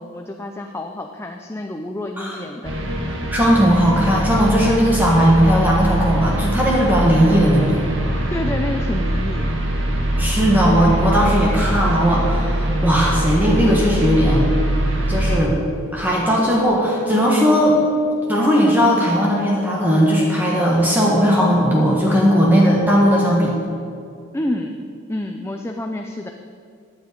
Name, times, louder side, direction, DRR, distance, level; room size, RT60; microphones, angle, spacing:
voice 1, 0.0-2.7 8.3-9.5 24.3-24.8 25.1-26.3, left 1 dB, 10° left, 4 dB, 0.5 m, -28 dB
sound 1, 2.6-15.4, right 1 dB, 60° right, 1.7 m, -22 dB
voice 2, 3.3-7.8 10.2-14.5 15.1-15.6 15.9-17.8 18.3-23.5, equal, 10° right, -4 dB, 1.7 m, -17 dB
15.5 x 9.6 x 5.2 m, 2.4 s
head